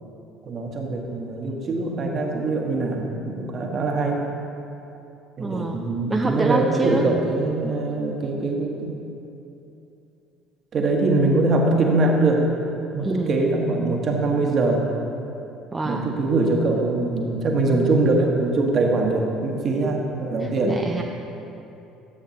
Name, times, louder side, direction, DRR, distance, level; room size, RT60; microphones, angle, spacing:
voice 1, 0.4-4.2 5.4-8.9 10.7-12.4 12.8-14.9 15.8-20.8, right 2 dB, 45° right, 1 dB, 1.2 m, -22 dB
voice 2, 5.4-7.1 13.0-13.4 15.7-16.1 20.4-21.0, right 3 dB, 20° right, 1 dB, 0.5 m, -26 dB
12.0 x 7.9 x 2.8 m, 2.9 s
figure-of-eight pair, 60°, 0 cm